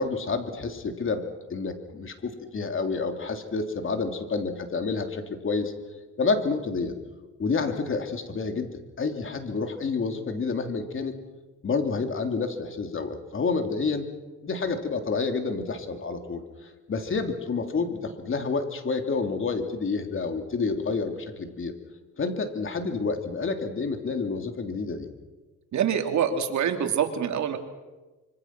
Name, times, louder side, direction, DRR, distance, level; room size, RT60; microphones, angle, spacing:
voice 1, 0.0-5.7 6.2-6.9 7.4-11.1 11.6-14.1 14.4-16.4 16.9-21.7 22.2-25.1, left 4 dB, 45° left, 6 dB, 3.3 m, -29 dB
voice 2, 25.7-27.6, right 8 dB, 70° right, 6 dB, 2.9 m, -25 dB
26.0 x 24.5 x 6.1 m, 1.2 s
cardioid pair, 90°, 30 cm